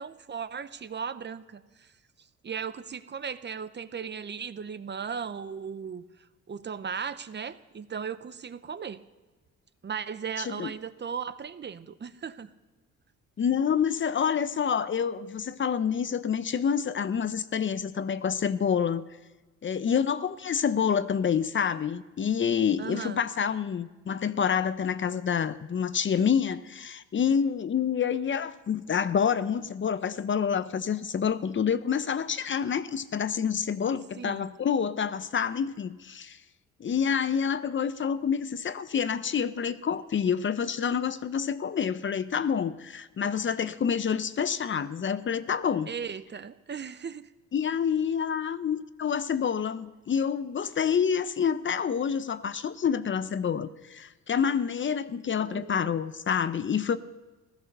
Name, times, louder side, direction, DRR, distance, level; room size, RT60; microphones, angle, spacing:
voice 1, 0.0-1.9 2.4-6.0 6.5-9.0 9.8-12.5 22.8-23.2 34.2-34.5 45.9-47.3 55.4-55.9, right 6 dB, 35° right, 13 dB, 0.8 m, -37 dB
voice 2, 10.4-10.7 13.4-19.0 19.6-36.4 36.8-45.9 47.5-57.0, left 7 dB, 40° left, 14 dB, 0.7 m, -28 dB
15.5 x 13.5 x 6.7 m, 1.2 s
cardioid pair, 90°, 30 cm